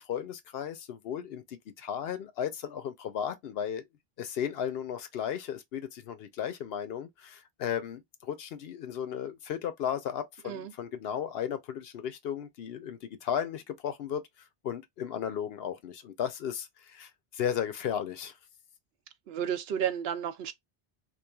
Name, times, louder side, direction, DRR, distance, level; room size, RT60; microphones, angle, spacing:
voice 1, 0.0-3.8 4.2-14.2 14.6-18.4, left 9 dB, 80° left, 0.8 m, -35 dB
voice 2, 19.3-20.5, right 9 dB, 75° right, 0.8 m, -32 dB
3.1 x 2.4 x 2.2 m
omnidirectional pair, 1.0 m